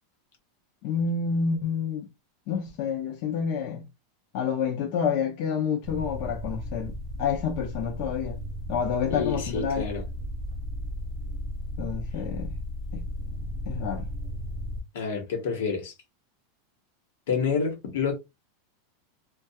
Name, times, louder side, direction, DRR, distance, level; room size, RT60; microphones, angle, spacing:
voice 1, 0.8-2.1 2.5-3.8 4.3-8.4 8.7-9.9 11.8-12.5 12.9-13.1 13.7-14.1, left 6 dB, 50° left, 0.5 m, -29 dB
sound 1, 5.8-14.8, equal, 25° right, 0.6 m, -35 dB
voice 2, 9.1-10.0 14.9-15.9 17.3-18.1, left 5 dB, 80° left, 1.0 m, -28 dB
2.7 x 2.3 x 2.2 m
supercardioid pair, 155°, 0 cm